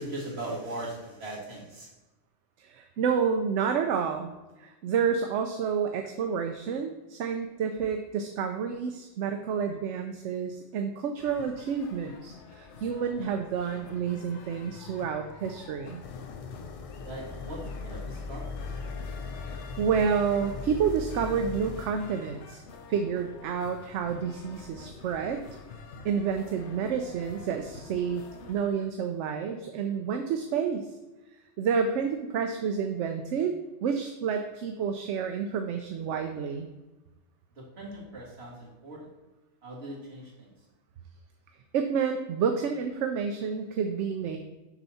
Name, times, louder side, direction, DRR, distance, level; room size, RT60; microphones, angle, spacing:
voice 1, 0.0-1.9 17.0-18.6 37.6-39.1 39.6-40.5, right 1 dB, 60° right, -4 dB, 2.3 m, -39 dB
voice 2, 2.6-4.3 4.6-16.0 19.4-22.6 22.9-25.4 26.0-28.2 28.5-30.9 31.6-33.5 33.8-36.7 41.7-44.4, right 6 dB, 80° right, 6 dB, 0.9 m, -29 dB
sound 1, 11.2-28.7, left 4 dB, 75° left, 1.1 m, -48 dB
sound 2, 16.0-21.9, left 4 dB, 50° left, 0.4 m, -39 dB
7.0 x 5.7 x 4.1 m, 1.1 s
omnidirectional pair, 1.2 m